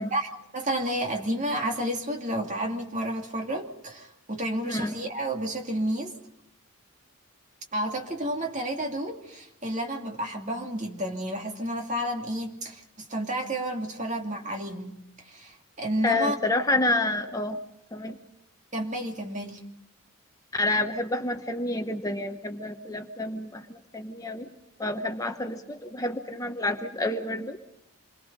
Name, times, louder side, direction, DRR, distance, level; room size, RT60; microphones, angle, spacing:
voice 1, 0.0-6.1 7.7-14.9 15.3-16.4 18.7-19.6, right 1 dB, 35° right, 2 dB, 2.5 m, -31 dB
voice 2, 16.0-17.6 17.9-18.2 20.5-24.5 24.8-27.6, left 2 dB, 15° left, 5 dB, 0.9 m, -29 dB
27.5 x 22.5 x 5.4 m, 0.77 s
head